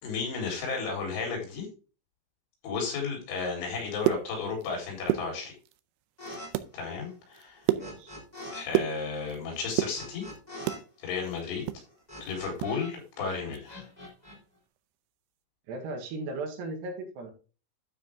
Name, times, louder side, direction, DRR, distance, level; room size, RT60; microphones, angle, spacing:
voice 1, 0.0-1.7 2.6-5.5 6.7-7.6 8.5-10.3 11.0-11.7 12.2-13.8, left 5 dB, 85° left, 1 dB, 6.3 m, -33 dB
sound 1, 3.8-4.7 5.0-5.8 6.2-6.7 7.1-9.4 9.7-10.9 11.2-12.8 13.0-13.1 13.5-13.7 14.1-14.3, right 15 dB, 90° right, 3.0 m, -30 dB
sound 2, 6.2-6.5 6.7-8.6 8.9-12.9 13.2-14.4, left 1 dB, 10° left, 2.1 m, -44 dB
voice 2, 7.8-8.2 15.7-17.3, right 2 dB, 65° right, 4 dB, 3.6 m, -37 dB
12.0 x 5.0 x 3.6 m, 0.34 s
omnidirectional pair, 5.4 m